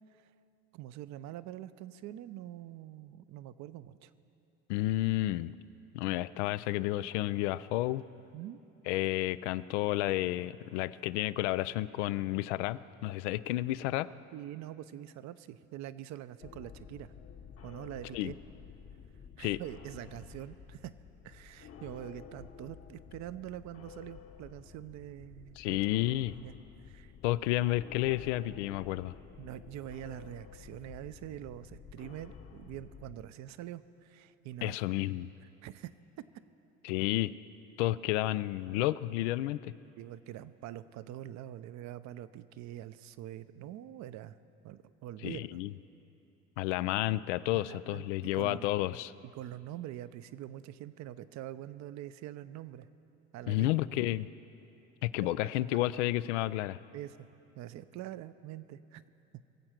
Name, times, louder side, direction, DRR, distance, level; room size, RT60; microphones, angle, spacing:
voice 1, 0.7-4.1 8.3-8.6 14.3-17.1 17.6-18.4 19.4-20.9 21.2-25.8 26.1-26.5 26.9-27.1 29.4-34.8 35.4-35.9 40.0-44.4 44.6-45.6 47.5-48.6 49.3-52.9 53.3-53.7 55.4-55.8 56.9-57.3 57.6-59.0, right 13 dB, 55° right, 14 dB, 0.6 m, -45 dB
voice 2, 4.7-5.5 5.9-8.0 8.9-14.1 18.1-18.3 19.4-19.6 25.6-26.3 27.2-29.1 34.6-35.3 36.8-37.3 37.8-39.7 45.2-45.7 46.6-49.1 53.5-54.3 55.0-56.8, left 16 dB, 80° left, 16 dB, 0.5 m, -31 dB
sound 1, 16.4-33.2, left 7 dB, 40° left, 1.1 m, -51 dB
22.0 x 7.8 x 5.9 m, 2.9 s
hypercardioid pair, 80°, 35 cm